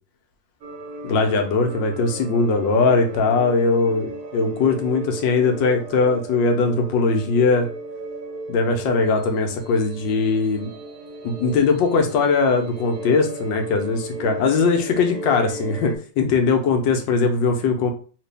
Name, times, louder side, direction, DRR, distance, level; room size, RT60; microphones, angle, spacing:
sound 1, 0.6-16.0, right 2 dB, 65° right, 1.0 m, -35 dB
voice 1, 1.0-7.7 8.5-10.7 11.2-17.9, left 4 dB, 80° left, 4 dB, 1.4 m, -20 dB
3.2 x 2.9 x 3.3 m, 0.39 s
omnidirectional pair, 2.0 m